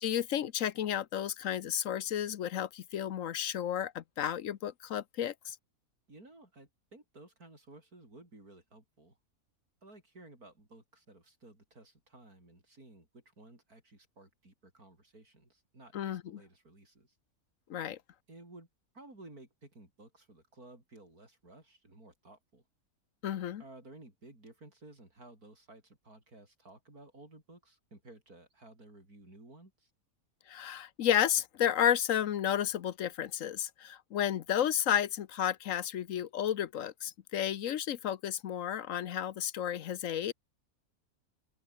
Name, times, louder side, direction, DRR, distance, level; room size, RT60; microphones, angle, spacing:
voice 1, 0.0-5.6 15.9-16.4 17.7-18.0 23.2-23.6 30.5-40.3, left 10 dB, 65° left, 1.1 m, -32 dB
voice 2, 6.1-9.2 9.8-17.2 18.3-18.7 18.9-22.6 23.6-29.9, right 2 dB, 80° right, 7.5 m, -55 dB
open air
omnidirectional pair, 1.6 m